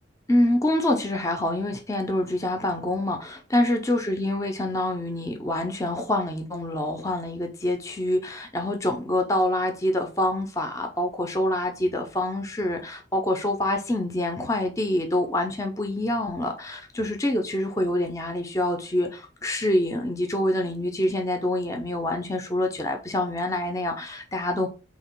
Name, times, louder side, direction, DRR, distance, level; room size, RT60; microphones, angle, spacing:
voice 1, 0.3-24.7, left 1 dB, 15° left, 0.5 m, -26 dB
2.9 x 2.8 x 4.4 m
head